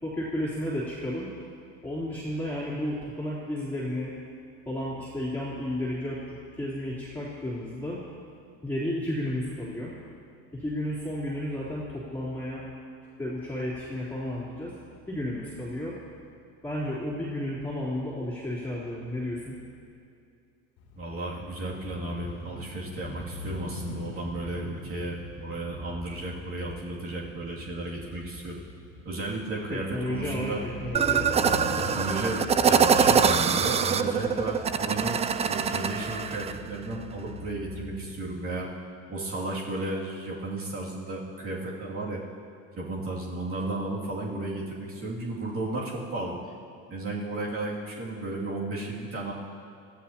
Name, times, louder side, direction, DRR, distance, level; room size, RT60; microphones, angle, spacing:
voice 1, 0.0-1.3 1.8-4.1 4.6-8.0 8.6-9.9 10.5-12.6 13.2-14.7 15.1-16.0 16.6-19.5 29.7-31.2, left 1 dB, 5° left, -9 dB, 3.3 m, -32 dB
Crow / Motorcycle, 20.8-38.6, left 2 dB, 70° left, 2.6 m, -42 dB
voice 2, 21.0-28.6 29.0-30.6 31.4-32.4 32.7-38.7 39.1-42.2 42.7-46.4 46.9-49.3, right 2 dB, 35° right, -4 dB, 2.7 m, -34 dB
sound 1, 30.9-36.5, right 6 dB, 20° right, 0.4 m, -24 dB
22.0 x 14.0 x 2.9 m, 2.4 s
supercardioid pair, 100°, 37 cm